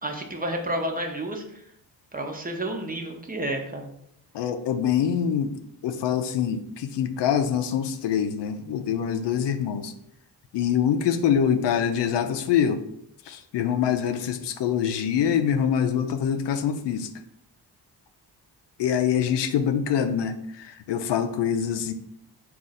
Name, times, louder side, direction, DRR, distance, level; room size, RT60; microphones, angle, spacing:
voice 1, 0.0-1.6 2.1-3.9, right 1 dB, 20° right, 2 dB, 0.7 m, -30 dB
voice 2, 4.3-5.5 5.8-9.9 10.5-12.8 13.3-17.1 18.8-21.9, left 8 dB, 80° left, 8 dB, 0.5 m, -25 dB
3.7 x 2.5 x 4.0 m, 0.72 s
cardioid pair, 85°, 41 cm